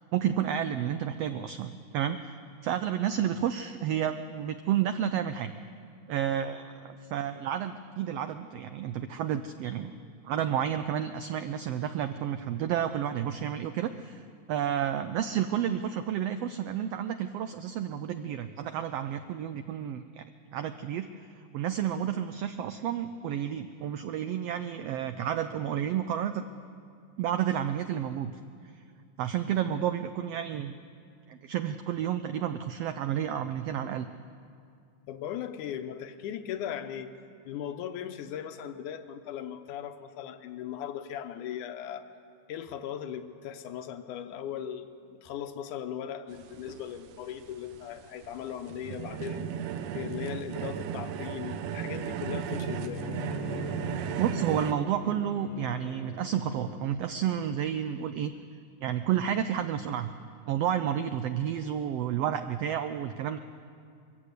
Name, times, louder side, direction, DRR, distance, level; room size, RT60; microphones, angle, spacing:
voice 1, 0.1-5.5 6.1-9.9 10.2-20.2 20.5-21.1 21.3-26.4 27.2-28.3 29.2-30.7 31.3-34.1 54.2-58.3 58.8-60.1 60.5-63.4, right 9 dB, 85° right, 10 dB, 1.4 m, -31 dB
voice 2, 35.1-37.1 37.5-42.1 42.5-49.5 49.9-53.0, left 9 dB, 85° left, 8 dB, 2.4 m, -38 dB
sound 1, 46.3-54.7, right 8 dB, 70° right, 1.6 m, -35 dB
Bowed string instrument, 52.5-57.0, left 5 dB, 60° left, 1.5 m, -42 dB
22.5 x 15.0 x 8.3 m, 2.4 s
omnidirectional pair, 3.5 m